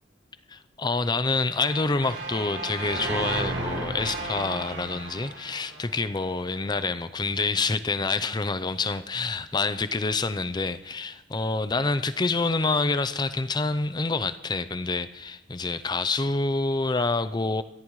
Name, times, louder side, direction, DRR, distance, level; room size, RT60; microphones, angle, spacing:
voice 1, 0.5-17.6, left 3 dB, 25° left, 12 dB, 0.5 m, -27 dB
sound 1, 1.5-6.6, right 2 dB, 65° right, 3.5 m, -34 dB
28.0 x 13.5 x 3.1 m, 1.1 s
head